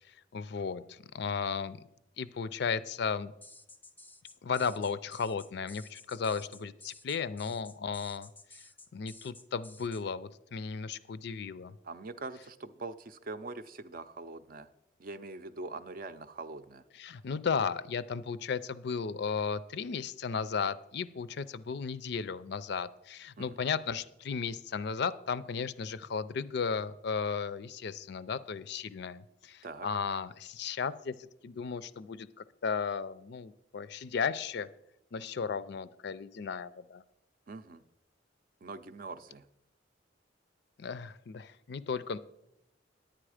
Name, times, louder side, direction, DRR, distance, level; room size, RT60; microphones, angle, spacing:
voice 1, 0.3-1.8 2.2-3.3 4.4-8.3 8.9-11.7 17.0-31.1 31.4-34.7 35.1-37.0 40.8-42.2, left 5 dB, 60° left, 16 dB, 0.4 m, -35 dB
sound 1, 3.4-10.0, left 3 dB, 10° left, 0.5 m, -53 dB
voice 2, 11.8-14.7 15.0-16.8 23.4-23.6 29.6-29.9 37.5-37.8 38.6-39.5, right 3 dB, 50° right, 11 dB, 0.5 m, -43 dB
10.0 x 8.9 x 4.9 m, 0.85 s
head